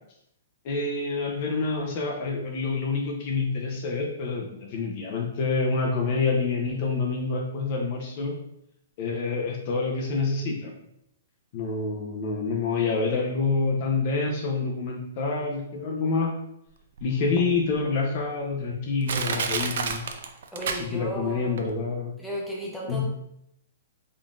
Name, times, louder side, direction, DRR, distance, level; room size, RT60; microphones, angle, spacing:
voice 1, 0.6-8.3 9.0-10.7 11.5-16.4 17.0-20.1 20.7-22.1 22.9-23.0, left 4 dB, 35° left, 1 dB, 0.6 m, -27 dB
Crushing, 17.0-17.1 17.7-17.8 18.5-18.6 19.1-21.3 21.6-21.7, right 6 dB, 65° right, 0.4 m, -29 dB
voice 2, 20.5-21.6 22.2-23.0, right 1 dB, ahead, -5 dB, 0.6 m, -34 dB
3.7 x 3.7 x 2.4 m, 0.77 s
hypercardioid pair, 165°, 0 cm